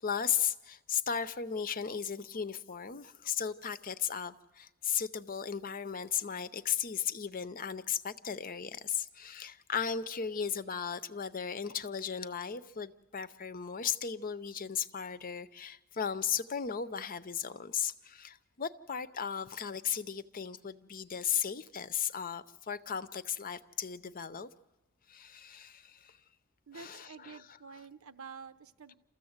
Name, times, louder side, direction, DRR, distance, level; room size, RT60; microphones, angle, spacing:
voice 1, 0.0-24.5 25.1-26.2 26.7-27.8, left 7 dB, 40° left, 13 dB, 0.6 m, -36 dB
voice 2, 26.7-29.0, right 5 dB, 70° right, 12 dB, 0.8 m, -49 dB
28.5 x 14.0 x 8.0 m, 1.1 s
head